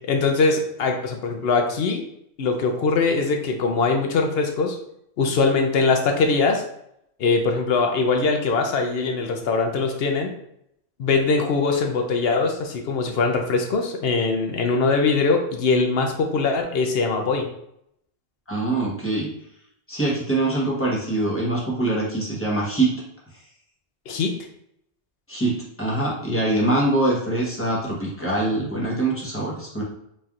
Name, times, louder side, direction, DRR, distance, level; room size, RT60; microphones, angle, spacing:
voice 1, 0.1-2.0 2.4-4.8 5.2-6.6 7.2-10.3 11.0-17.5 24.1-24.3, left 4 dB, 65° left, 4 dB, 0.8 m, -22 dB
voice 2, 18.5-19.3 19.9-22.9 25.3-29.8, right 2 dB, 10° left, -5 dB, 1.0 m, -23 dB
4.2 x 3.2 x 2.4 m, 0.74 s
omnidirectional pair, 1.1 m